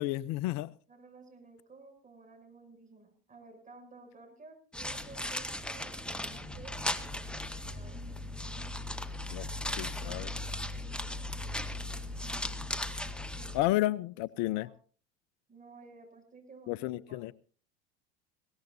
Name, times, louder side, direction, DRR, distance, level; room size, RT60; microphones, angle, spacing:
voice 1, 0.0-0.7 9.3-9.5 9.8-10.3 13.5-14.7 16.7-17.3, left 16 dB, 55° left, 18 dB, 0.7 m, -31 dB
voice 2, 0.9-8.1 9.5-9.9 11.7-12.3 13.3-13.7 14.3-14.7 15.5-17.3, right 3 dB, 25° right, 4 dB, 7.4 m, -54 dB
sound 1, 4.7-13.6, left 1 dB, 5° left, 1.5 m, -37 dB
21.5 x 18.0 x 2.6 m, 0.38 s
hypercardioid pair, 90°, 33 cm